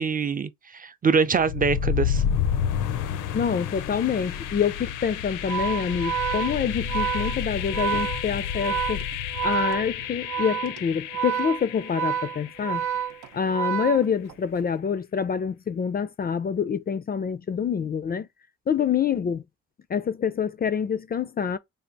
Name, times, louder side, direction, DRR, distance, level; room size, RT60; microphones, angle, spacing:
voice 1, 0.0-2.2, right 5 dB, 30° right, 0.5 m, -24 dB
sound 1, 1.4-13.3, left 8 dB, 85° left, 0.7 m, -30 dB
voice 2, 3.3-9.0 9.4-12.9 13.3-18.3 18.7-19.4 19.9-21.6, left 7 dB, 30° left, 0.4 m, -26 dB
Organ, 5.4-14.5, right 9 dB, 85° right, 0.7 m, -29 dB
3.4 x 2.4 x 3.9 m
cardioid pair, 90°, 30 cm